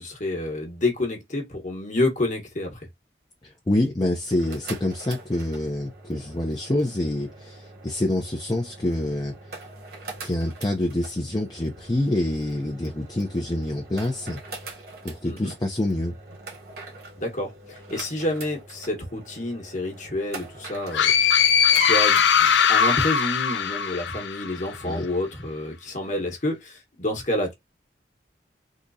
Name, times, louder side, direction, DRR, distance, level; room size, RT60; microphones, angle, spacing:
voice 1, 0.0-2.9 15.2-15.5 17.2-21.4 21.8-27.5, left 1 dB, 45° left, 1.3 m, -29 dB
voice 2, 3.4-9.7 10.2-14.4 14.7-16.2 24.8-25.0, left 1 dB, 25° left, 0.6 m, -27 dB
sound 1, 4.2-22.7, right 3 dB, 60° right, 1.6 m, -43 dB
sound 2, 20.9-24.6, left 7 dB, 85° left, 0.5 m, -20 dB
3.7 x 2.9 x 2.6 m
head